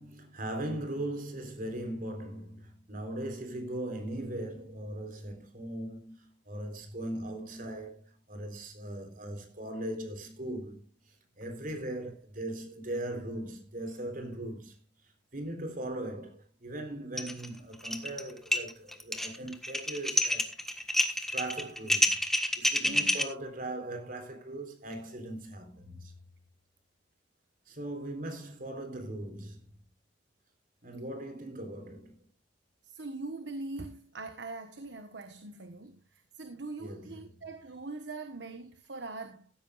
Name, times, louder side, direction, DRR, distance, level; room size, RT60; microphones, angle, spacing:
voice 1, 0.0-10.8 11.4-14.7 15.3-20.8 21.1-22.2 22.6-26.1 27.7-29.6 30.8-32.2 36.8-37.5, right 1 dB, 50° right, 3.9 m, -39 dB
sound 1, 17.2-17.5 17.7-18.2 18.5-23.2, left 1 dB, ahead, 1.5 m, -28 dB
voice 2, 22.8-23.2 32.8-36.0 36.3-39.5, right 3 dB, 70° right, 1.4 m, -42 dB
15.5 x 13.5 x 2.5 m
head